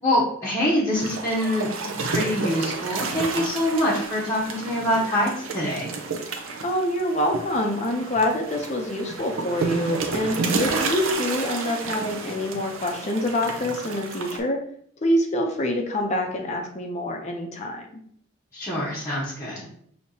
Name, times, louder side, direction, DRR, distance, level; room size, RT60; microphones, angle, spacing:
voice 1, 0.0-5.9 18.5-19.7, left 1 dB, 15° left, -8 dB, 0.9 m, -25 dB
sound 1, 0.9-14.4, right 3 dB, 80° right, 0.7 m, -30 dB
voice 2, 6.6-14.6 15.0-17.8, left 1 dB, 35° left, 2 dB, 0.5 m, -26 dB
6.2 x 2.8 x 2.7 m, 0.64 s
head